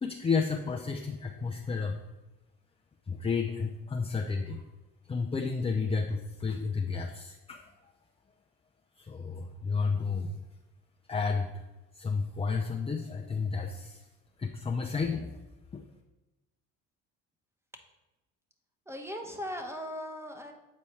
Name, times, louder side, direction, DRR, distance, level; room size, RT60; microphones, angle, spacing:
voice 1, 0.0-2.0 3.1-4.6 5.1-7.6 9.0-10.4 11.1-11.6 12.0-14.0 14.4-15.4 15.7-15.8, left 5 dB, 15° left, 2 dB, 0.5 m, -31 dB
voice 2, 18.9-20.5, equal, 5° right, 4 dB, 1.0 m, -38 dB
8.2 x 4.2 x 3.3 m, 1.0 s
supercardioid pair, 80°, 35 cm